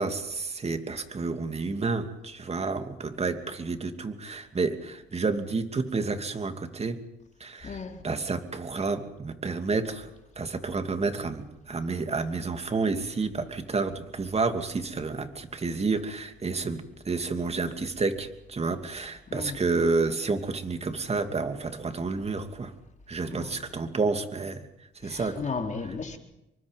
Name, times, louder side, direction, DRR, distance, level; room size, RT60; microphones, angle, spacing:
voice 1, 0.0-7.0 7.4-7.8 8.0-10.1 10.4-22.7 23.1-24.6 25.0-25.4, right 4 dB, 30° right, 2.8 m, -30 dB
voice 2, 7.6-8.0 19.3-19.6 23.3-23.6 25.0-26.2, left 4 dB, 40° left, 4.2 m, -35 dB
28.0 x 24.0 x 5.4 m
cardioid pair, 90°, 20 cm